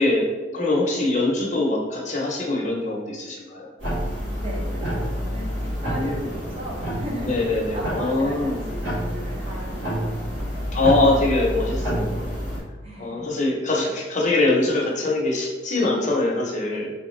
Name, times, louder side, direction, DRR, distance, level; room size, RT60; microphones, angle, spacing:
voice 1, 0.0-3.7 5.9-6.3 7.3-8.7 10.7-12.2 13.0-16.9, left 2 dB, 40° left, -2 dB, 0.7 m, -23 dB
sound 1, 3.8-12.6, equal, 75° right, 1.5 m, -28 dB
voice 2, 4.4-10.6 12.8-13.3, equal, 30° right, -3 dB, 0.8 m, -37 dB
3.3 x 3.2 x 3.1 m, 1.3 s
head